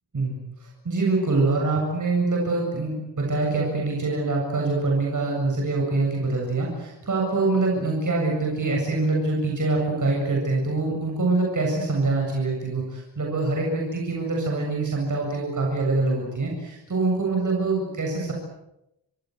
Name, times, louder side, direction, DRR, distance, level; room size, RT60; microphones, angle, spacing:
voice 1, 0.1-18.3, right 3 dB, 45° right, -1 dB, 7.7 m, -25 dB
29.5 x 25.0 x 8.0 m, 0.87 s
wide cardioid pair, 175°, 43 cm